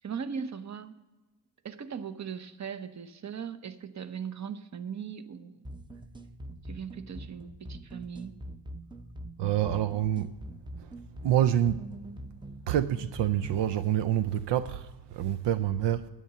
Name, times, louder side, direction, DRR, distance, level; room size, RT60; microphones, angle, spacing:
voice 1, 0.0-1.0 1.6-5.6 6.7-8.4, right 7 dB, 40° right, 0.9 m, -39 dB
sound 1, 5.6-13.7, right 1 dB, 10° right, 0.6 m, -44 dB
voice 2, 9.4-10.3 11.2-11.8 12.7-16.1, right 11 dB, 75° right, 0.6 m, -27 dB
10.0 x 8.8 x 6.8 m
cardioid pair, 95°, 44 cm